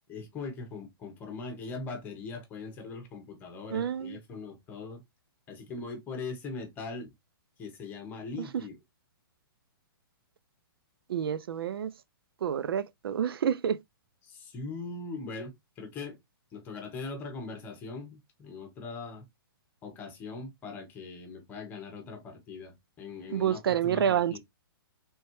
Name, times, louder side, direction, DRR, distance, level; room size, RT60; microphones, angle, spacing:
voice 1, 0.0-5.0 5.5-7.1 7.6-8.8 14.2-16.2 16.5-19.2 19.8-24.4, left 3 dB, 15° left, 1.1 m, -41 dB
voice 2, 3.7-4.2 8.4-8.7 11.1-11.9 12.4-13.8 23.3-24.4, right 9 dB, 75° right, 0.5 m, -29 dB
4.1 x 3.5 x 3.0 m
hypercardioid pair, 165°, 12 cm